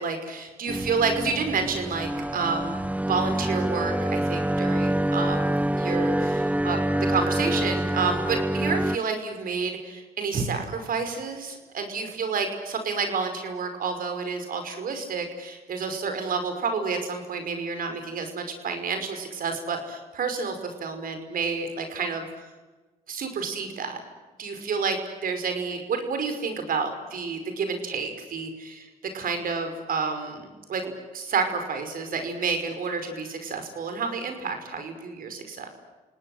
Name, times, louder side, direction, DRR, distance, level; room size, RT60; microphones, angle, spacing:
voice 1, 0.0-2.7 3.0-6.8 7.1-22.5 23.1-24.0 24.4-28.9 29.1-35.7, right 5 dB, 65° right, 7 dB, 5.4 m, -30 dB
sound 1, 0.7-9.0, right 1 dB, 10° right, 0.7 m, -26 dB
29.5 x 18.5 x 8.1 m, 1.2 s
cardioid pair, 65°, 16 cm